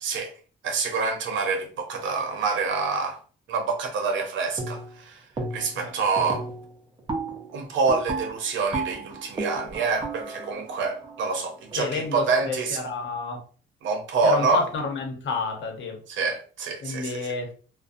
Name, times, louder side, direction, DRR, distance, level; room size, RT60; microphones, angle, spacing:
voice 1, 0.0-0.3 0.6-3.2 3.5-5.2 5.5-6.5 7.5-12.8 13.8-14.6 16.1-17.3, right 4 dB, 70° right, 0.7 m, -26 dB
sound 1, 4.6-5.0 5.4-5.8 6.2-12.0, right 3 dB, 25° right, 0.6 m, -34 dB
voice 2, 11.8-13.4 14.2-16.0 16.8-17.5, left 4 dB, 70° left, 0.8 m, -29 dB
2.5 x 2.1 x 2.5 m
cardioid pair, 90°, 20 cm